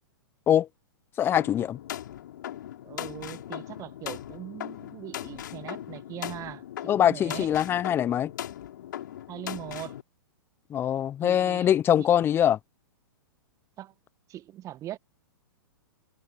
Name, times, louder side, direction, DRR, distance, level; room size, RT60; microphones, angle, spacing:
voice 1, 1.2-1.8 6.9-8.3 10.7-12.6, left 10 dB, 20° left, 0.5 m, -23 dB
sound 1, 1.4-10.0, left 11 dB, 60° left, 7.2 m, -39 dB
voice 2, 2.8-7.5 9.3-10.0 11.2-12.2 13.8-13.9 14.3-15.0, right 13 dB, 25° right, 1.5 m, -41 dB
figure-of-eight pair, 105°, 12 cm